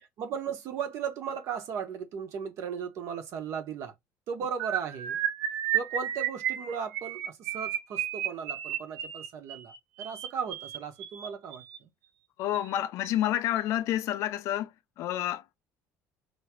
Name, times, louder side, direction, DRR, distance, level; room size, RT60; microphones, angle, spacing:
voice 1, 0.0-3.9 4.3-5.2 5.7-11.9, right 7 dB, 55° right, 1.2 m, -36 dB
sound 1, 4.6-11.8 12.5-12.8 13.0-13.3 13.6-13.8, right 11 dB, 80° right, 0.9 m, -33 dB
voice 2, 12.4-15.4, left 12 dB, 55° left, 0.4 m, -29 dB
4.7 x 3.1 x 3.0 m
cardioid pair, 165°, 6 cm